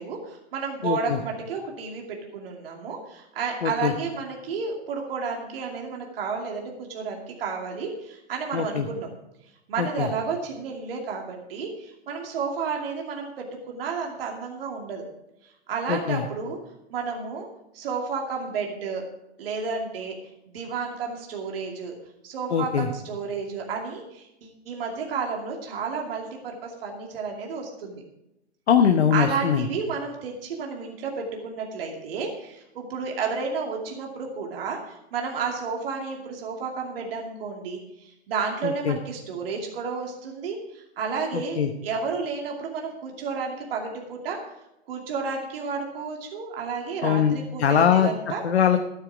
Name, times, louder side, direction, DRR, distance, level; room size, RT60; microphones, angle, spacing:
voice 1, 0.0-9.1 9.7-15.0 15.7-16.6 16.9-17.5 17.7-19.0 19.4-20.2 20.5-21.9 22.2-28.0 29.1-44.4 44.9-48.4, right 5 dB, 60° right, 0 dB, 2.6 m, -31 dB
voice 2, 0.8-1.2 3.6-3.9 8.5-8.9 9.8-10.1 15.9-16.2 22.5-22.9 28.7-29.7 38.6-39.0 41.3-41.7 47.0-48.1 48.4-48.8, left 8 dB, 70° left, 6 dB, 1.1 m, -22 dB
13.0 x 9.5 x 4.9 m, 0.87 s
figure-of-eight pair, 110°, 33 cm